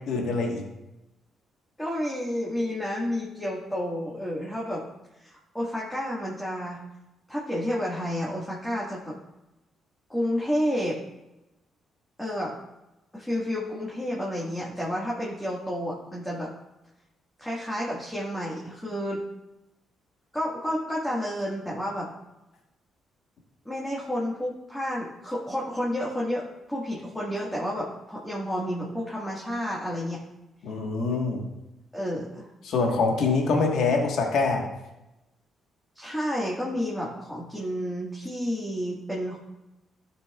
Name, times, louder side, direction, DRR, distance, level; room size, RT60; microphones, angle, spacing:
voice 1, 0.1-0.6 30.6-31.4 32.6-34.7, left 4 dB, 70° left, 1 dB, 1.4 m, -24 dB
voice 2, 1.8-4.8 5.2-6.8 7.3-9.1 10.1-11.0 12.2-12.6 13.1-16.5 17.4-19.2 20.3-22.1 23.6-30.2 31.9-32.5 35.9-39.4, equal, 5° left, -5 dB, 1.7 m, -30 dB
13.0 x 5.9 x 2.4 m, 0.97 s
cardioid pair, 90°, 0 cm